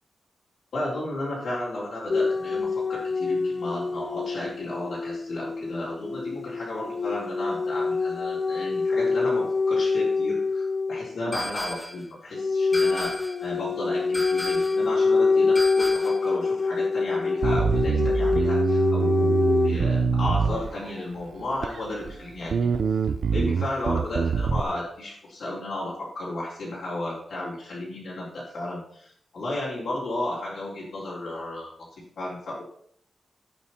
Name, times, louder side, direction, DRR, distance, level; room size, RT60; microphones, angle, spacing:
voice 1, 0.7-22.7 23.3-32.6, left 1 dB, 75° left, -8 dB, 4.1 m, -33 dB
sound 1, 2.1-11.2 12.3-19.7, left 4 dB, 40° left, 0.5 m, -25 dB
sound 2, 11.3-12.1 12.7-13.5 14.1-14.9 15.5-16.3, equal, 5° left, 1.1 m, -34 dB
Bass guitar, 17.4-21.0 21.6-22.2 22.5-24.6, right 6 dB, 65° right, 0.6 m, -24 dB
12.0 x 9.2 x 4.4 m, 0.64 s
wide cardioid pair, 180°, 0 cm